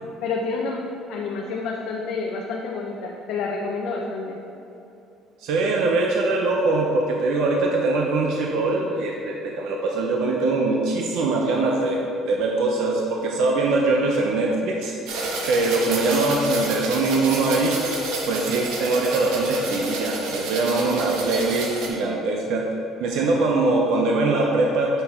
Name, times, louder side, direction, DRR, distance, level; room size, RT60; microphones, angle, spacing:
voice 1, 0.2-0.8 1.1-4.4, left 4 dB, 60° left, -1 dB, 0.6 m, -28 dB
voice 2, 5.4-12.0 12.3-14.9 15.5-17.7 18.3-22.7 23.0-25.0, right 3 dB, 65° right, 0 dB, 0.6 m, -22 dB
sound 1, 15.1-21.9, right 2 dB, 80° right, 1.0 m, -29 dB
7.9 x 4.0 x 4.3 m, 2.9 s
cardioid pair, 160°, 0 cm